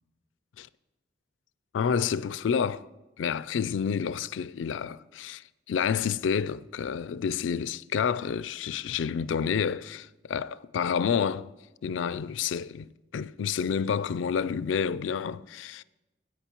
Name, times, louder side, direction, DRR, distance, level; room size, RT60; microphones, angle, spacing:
voice 1, 1.7-2.9 3.2-11.5 11.8-15.8, left 7 dB, 85° left, 0.3 m, -29 dB
20.0 x 8.7 x 3.0 m
head